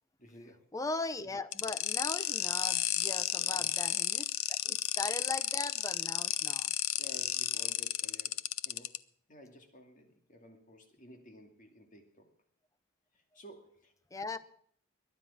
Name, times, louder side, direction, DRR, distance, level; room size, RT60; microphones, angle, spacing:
voice 1, 0.2-0.7 3.4-3.7 7.0-9.0 9.3-12.3 13.1-13.9, equal, 40° left, 4 dB, 2.4 m, -54 dB
voice 2, 0.7-6.7 14.1-14.4, left 2 dB, 15° left, 13 dB, 0.7 m, -39 dB
sound 1, 1.5-9.0, left 13 dB, 85° left, 0.7 m, -32 dB
22.5 x 9.7 x 5.7 m, 0.63 s
head